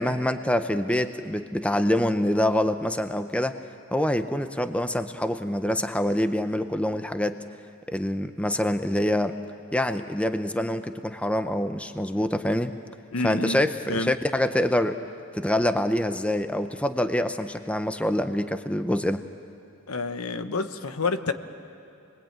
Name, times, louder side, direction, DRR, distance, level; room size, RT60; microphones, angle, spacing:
voice 1, 0.0-3.6 3.9-7.4 7.9-9.3 9.7-12.7 13.2-15.0 15.3-19.2, left 1 dB, 5° left, 9 dB, 0.7 m, -25 dB
voice 2, 13.1-14.1 19.9-21.3, left 3 dB, 85° left, 9 dB, 1.1 m, -29 dB
27.5 x 21.0 x 8.9 m, 2.6 s
head